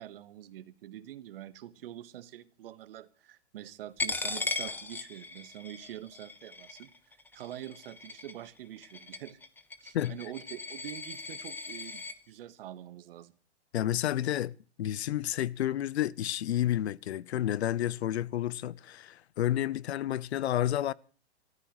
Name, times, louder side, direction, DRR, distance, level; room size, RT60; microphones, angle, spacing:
voice 1, 0.0-9.4 9.8-13.3, right 12 dB, 55° right, 1.4 m, -45 dB
Coin (dropping), 4.0-12.1, left 3 dB, 5° left, 0.8 m, -38 dB
voice 2, 13.7-20.9, left 12 dB, 70° left, 0.7 m, -30 dB
25.5 x 14.0 x 3.1 m
hypercardioid pair, 130°, 33 cm